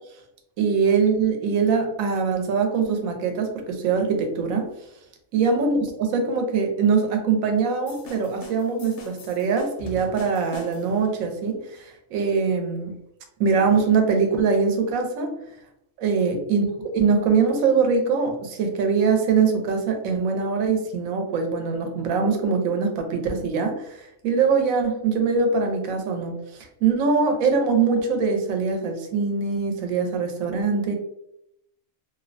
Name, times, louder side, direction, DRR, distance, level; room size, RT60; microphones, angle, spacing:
voice 1, 0.6-4.7 5.3-12.9 13.4-15.3 16.0-16.7 16.9-30.9, right 5 dB, 80° right, 4 dB, 1.0 m, -23 dB
sound 1, 7.9-11.1, left 1 dB, 65° left, 0.8 m, -42 dB
2.7 x 2.0 x 2.5 m, 0.79 s
omnidirectional pair, 1.4 m